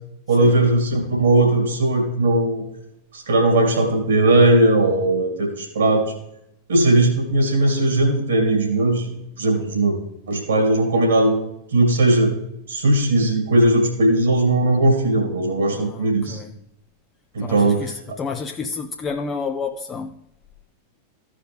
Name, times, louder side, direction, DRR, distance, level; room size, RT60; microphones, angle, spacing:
voice 1, 0.3-2.6 3.1-6.1 6.7-9.9 10.3-11.4 11.7-12.3 12.7-16.4 17.3-17.9, right 2 dB, 65° right, 2.4 m, -18 dB
voice 2, 15.7-16.6 17.4-20.2, left 5 dB, 20° left, 0.5 m, -30 dB
15.0 x 5.0 x 3.5 m
figure-of-eight pair, 90°, 0 cm